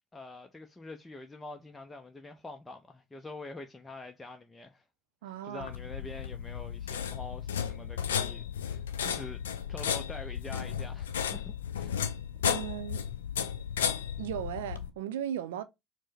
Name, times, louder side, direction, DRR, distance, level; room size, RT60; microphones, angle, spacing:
voice 1, 0.1-4.8 5.3-9.4 9.7-12.0, left 2 dB, 15° left, 0.5 m, -45 dB
voice 2, 5.2-5.7 12.4-13.0 14.2-15.6, right 10 dB, 75° right, 0.4 m, -36 dB
sound 1, 5.6-14.9, left 8 dB, 80° left, 0.4 m, -34 dB
4.6 x 2.1 x 4.1 m
figure-of-eight pair, 60°, 0 cm